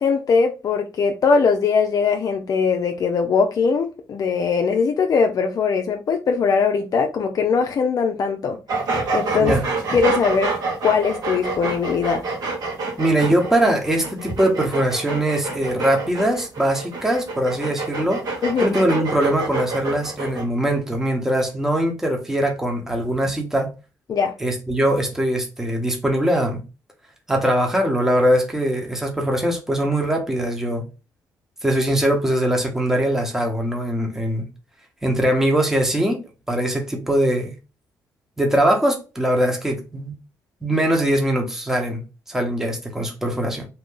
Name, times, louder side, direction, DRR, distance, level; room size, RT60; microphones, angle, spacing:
voice 1, 0.0-8.6 9.1-9.5 9.9-10.5 10.8-12.2 18.4-18.7 24.1-24.3, left 5 dB, 55° left, 0.5 m, -20 dB
sound 1, 8.7-20.4, right 3 dB, 60° right, 1.2 m, -27 dB
voice 2, 13.0-23.7 24.4-26.6 27.3-30.9 31.6-34.5 35.0-36.2 36.5-37.5 38.4-40.1 40.6-43.7, right 1 dB, 5° right, 1.1 m, -21 dB
2.8 x 2.6 x 3.7 m
supercardioid pair, 65°, 7 cm